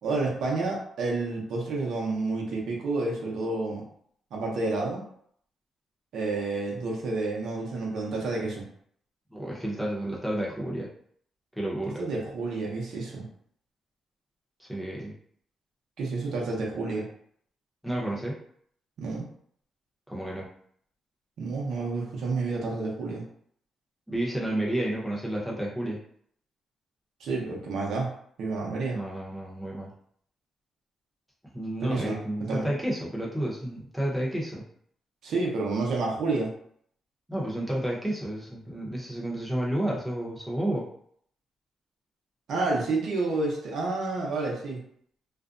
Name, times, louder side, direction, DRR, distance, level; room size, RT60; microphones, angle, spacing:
voice 1, 0.0-3.8 4.3-5.0 6.1-8.7 12.0-13.3 16.0-17.1 19.0-19.2 21.4-23.2 27.2-28.1 28.4-29.0 31.8-32.2 32.5-32.7 35.2-36.5 42.5-44.8, right 3 dB, 75° right, -2 dB, 0.8 m, -29 dB
voice 2, 9.3-10.9 11.6-12.0 14.6-15.2 17.8-18.4 20.1-20.5 24.1-26.0 28.9-29.9 31.5-34.6 37.3-40.9, right 1 dB, 5° right, -4 dB, 0.8 m, -31 dB
2.5 x 2.1 x 2.5 m, 0.63 s
cardioid pair, 100°, 0 cm